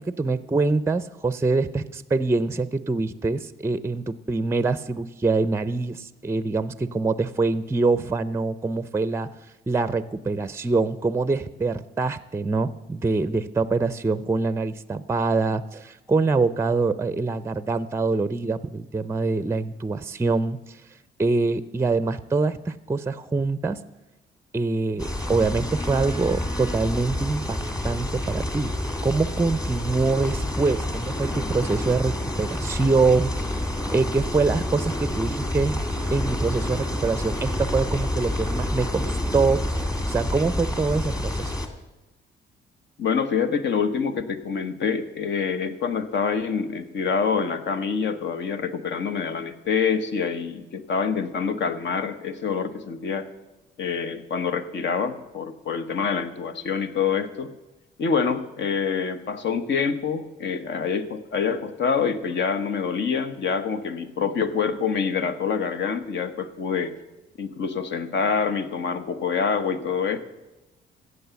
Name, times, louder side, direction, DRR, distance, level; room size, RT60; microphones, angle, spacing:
voice 1, 0.0-9.3 9.7-20.8 21.2-23.8 24.5-27.6 27.8-28.7 29.0-33.7 33.9-35.8 36.1-41.5, right 3 dB, 15° right, 15 dB, 0.5 m, -24 dB
sound 1, 25.0-41.7, left 1 dB, 20° left, 1.8 m, -28 dB
voice 2, 43.0-53.3 53.8-57.5 58.0-66.9 67.4-70.2, left 6 dB, 65° left, 10 dB, 1.1 m, -26 dB
15.0 x 8.1 x 7.0 m, 1.0 s
cardioid pair, 90°, 20 cm